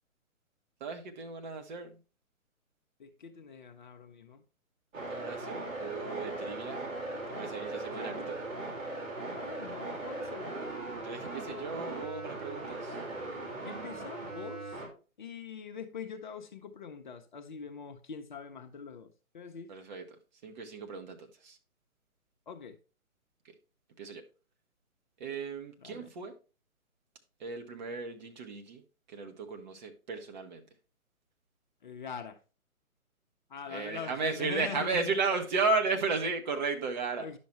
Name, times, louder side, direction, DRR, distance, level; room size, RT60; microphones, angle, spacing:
voice 1, 0.8-2.0 5.1-6.8 7.3-8.4 11.0-13.0 19.7-20.0 20.4-21.6 23.4-23.5 24.0-24.2 25.2-26.3 27.4-28.8 29.1-30.7 33.7-37.3, right 4 dB, 35° right, 1.2 m, -34 dB
voice 2, 3.0-4.4 8.0-8.3 9.3-10.5 11.4-11.9 13.6-14.8 15.2-19.7 22.5-22.8 25.8-26.1 31.8-32.4 33.5-35.2 37.2-37.4, left 6 dB, 35° left, 0.8 m, -43 dB
sound 1, 4.9-14.9, right 2 dB, 65° right, 4.7 m, -39 dB
10.0 x 6.2 x 3.1 m
figure-of-eight pair, 135°, 41 cm